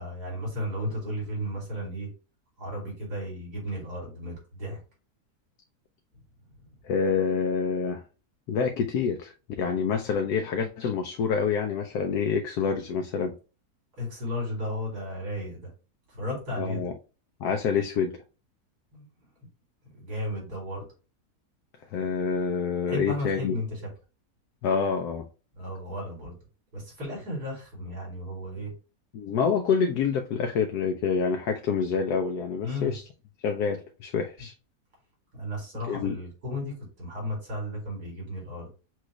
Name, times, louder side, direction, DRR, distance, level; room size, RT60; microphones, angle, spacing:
voice 1, 0.0-2.1 2.6-4.8 14.0-15.7 16.1-16.9 18.9-19.0 20.0-20.8 22.9-23.8 25.6-26.3 26.7-28.7 32.6-32.9 35.3-38.7, left 1 dB, 80° right, 3.4 m, -34 dB
voice 2, 6.8-8.0 8.5-13.4 16.6-16.9 17.4-18.2 21.9-23.6 24.6-25.3 29.1-33.0 33.4-34.5 35.9-36.2, left 6 dB, 80° left, 1.1 m, -27 dB
6.1 x 2.4 x 3.1 m
omnidirectional pair, 1.7 m